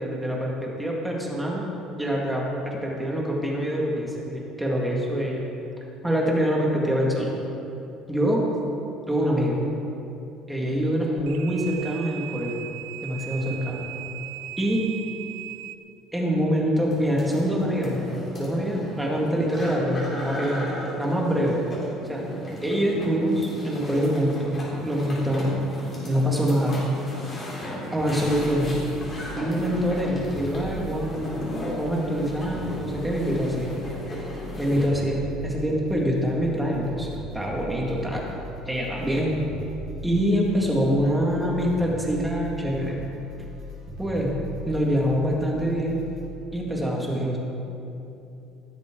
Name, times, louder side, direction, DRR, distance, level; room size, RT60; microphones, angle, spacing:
voice 1, 0.0-1.6 2.0-5.4 6.0-7.3 8.1-8.5 9.1-9.6 10.5-12.6 13.0-13.9 14.6-14.9 16.1-21.6 22.1-22.3 22.6-25.6 26.1-26.8 27.9-28.8 29.4-31.4 31.8-33.8 34.6-38.3 38.7-39.4 40.0-43.0 44.0-44.3 44.7-46.0 46.5-47.4, equal, 5° right, -3 dB, 2.0 m, -25 dB
sound 1, 11.2-15.8, right 14 dB, 80° right, 0.6 m, -38 dB
sound 2, 16.9-34.9, equal, 20° left, 3.8 m, -36 dB
sound 3, 28.0-46.3, left 1 dB, 40° right, 3.3 m, -39 dB
16.5 x 13.0 x 3.9 m, 2.8 s
cardioid pair, 165°, 0 cm